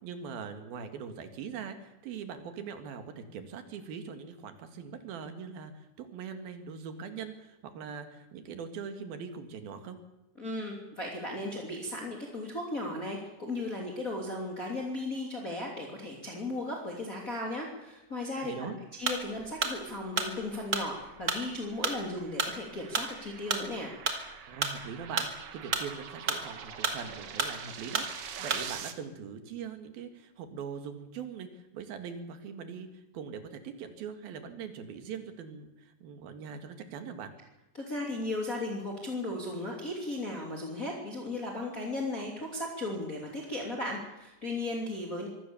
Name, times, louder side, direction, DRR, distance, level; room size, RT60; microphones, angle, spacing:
voice 1, 0.0-10.0 18.4-18.8 24.5-37.3, right 6 dB, 85° right, 7 dB, 3.7 m, -42 dB
voice 2, 10.4-23.9 37.7-45.3, left 2 dB, 25° left, -1 dB, 3.1 m, -36 dB
sound 1, 19.1-28.8, right 4 dB, 30° right, 2.0 m, -33 dB
sound 2, 20.1-28.9, right 8 dB, 55° right, 1.7 m, -46 dB
24.5 x 17.5 x 7.1 m, 0.94 s
omnidirectional pair, 4.2 m